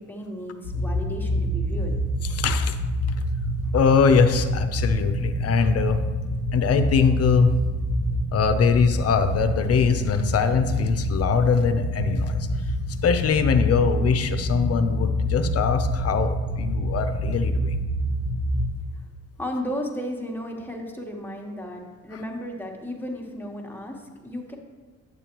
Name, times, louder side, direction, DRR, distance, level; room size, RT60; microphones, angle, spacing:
voice 1, 0.0-2.0 19.4-24.6, equal, 5° left, 0 dB, 1.2 m, -34 dB
sound 1, 0.6-18.7, equal, 70° right, 2.1 m, -27 dB
voice 2, 2.3-2.8 3.7-6.0 6.5-7.5 8.3-12.7 13.0-17.8, left 6 dB, 55° left, 9 dB, 0.6 m, -22 dB
9.6 x 7.0 x 3.0 m, 1.3 s
cardioid pair, 90°, 30 cm